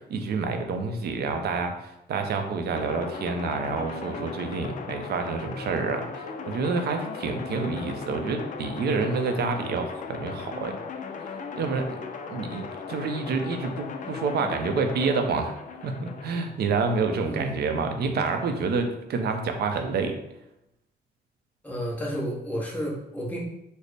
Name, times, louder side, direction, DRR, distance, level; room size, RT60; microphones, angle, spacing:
voice 1, 0.1-1.7 2.1-10.7 11.6-12.0 12.3-15.6 15.8-20.2, right 4 dB, 65° right, 5 dB, 0.5 m, -28 dB
sound 1, 2.7-16.5, left 5 dB, 50° left, 0.4 m, -37 dB
voice 2, 17.2-17.6 21.6-23.4, equal, 10° left, -3 dB, 0.8 m, -31 dB
4.0 x 2.0 x 3.3 m, 0.87 s
cardioid pair, 120°, 17 cm